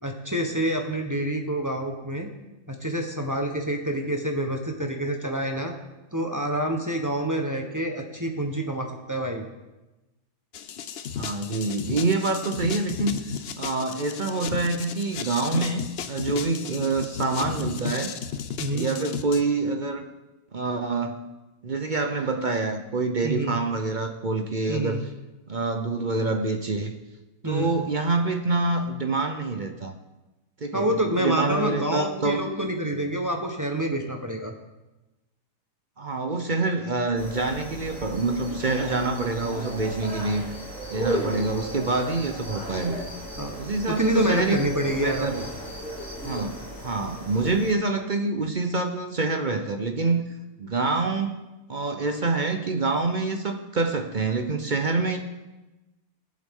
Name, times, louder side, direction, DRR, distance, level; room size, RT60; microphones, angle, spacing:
voice 1, 0.0-2.3 2.7-5.7 6.1-9.4 18.6-18.9 23.2-23.6 24.7-25.0 27.4-27.8 30.7-34.5 43.4-43.5 43.8-45.3, right 1 dB, 15° right, 1 dB, 0.9 m, -27 dB
sound 1, 10.5-19.4, left 7 dB, 65° left, 0.6 m, -34 dB
voice 2, 11.1-13.1 13.6-18.1 18.7-20.1 20.5-21.3 21.6-25.0 25.5-26.9 27.4-29.9 30.6-32.5 36.0-40.4 40.9-43.0 43.6-44.7 45.0-45.5 46.2-50.2 50.6-51.4 51.7-55.2, right 3 dB, 45° right, 5 dB, 0.6 m, -26 dB
sound 2, 37.1-47.7, equal, 5° left, 4.9 m, -35 dB
19.0 x 7.5 x 3.7 m, 1.1 s
omnidirectional pair, 1.8 m